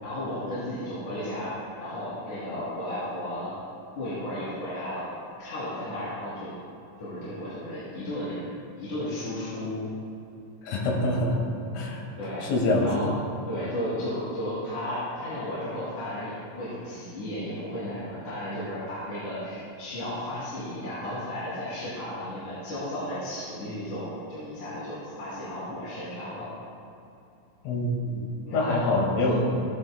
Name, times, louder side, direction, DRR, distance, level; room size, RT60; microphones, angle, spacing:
voice 1, 0.0-3.5 4.0-5.1 5.4-6.5 7.0-8.4 8.8-9.8 12.2-12.4 12.8-13.1 13.5-26.5 28.5-29.3, left 1 dB, 45° left, -12 dB, 3.8 m, -34 dB
voice 2, 10.6-11.5 11.7-12.0 12.4-13.2 27.6-28.3 28.5-29.3, left 2 dB, 85° left, -2 dB, 4.6 m, -25 dB
17.0 x 11.5 x 2.3 m, 2.7 s
omnidirectional pair, 5.6 m